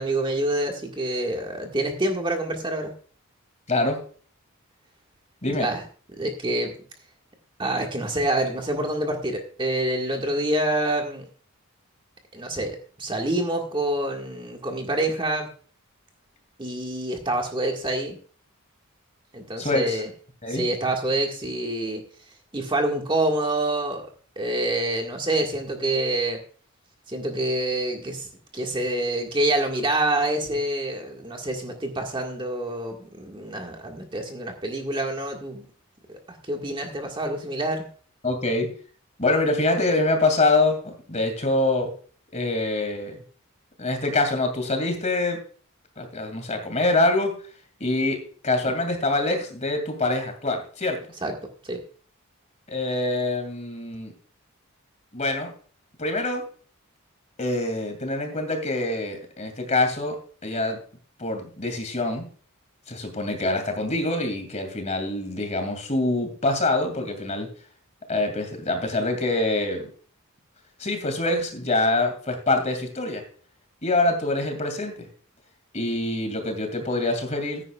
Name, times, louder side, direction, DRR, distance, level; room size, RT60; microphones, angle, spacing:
voice 1, 0.0-2.9 5.5-5.8 6.2-6.7 7.6-11.2 12.3-15.5 16.6-18.2 19.3-20.1 20.5-22.0 22.5-24.0 24.4-26.4 27.1-28.3 28.5-35.6 36.3-37.9 51.2-51.3 51.6-51.8, right 1 dB, 20° right, 2 dB, 1.8 m, -27 dB
voice 2, 3.7-4.0 5.4-5.7 19.6-20.0 20.4-20.6 38.2-38.7 39.2-41.9 42.3-43.2 43.8-45.4 46.0-47.3 47.8-48.2 48.4-51.0 52.7-54.1 55.1-55.5 56.0-56.4 57.4-60.2 60.4-60.8 61.2-62.3 62.9-67.5 68.1-69.8 70.8-73.2 73.8-74.9 75.7-77.6, left 2 dB, 30° left, 5 dB, 2.5 m, -25 dB
15.5 x 9.9 x 2.4 m, 0.43 s
head